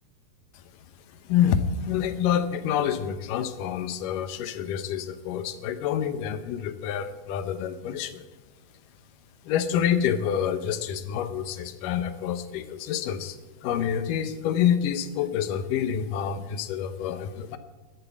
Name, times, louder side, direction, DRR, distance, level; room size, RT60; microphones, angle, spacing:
voice 1, 1.2-8.2 9.5-17.6, left 9 dB, 75° left, 10 dB, 2.4 m, -27 dB
12.5 x 9.0 x 8.1 m, 1.1 s
omnidirectional pair, 4.0 m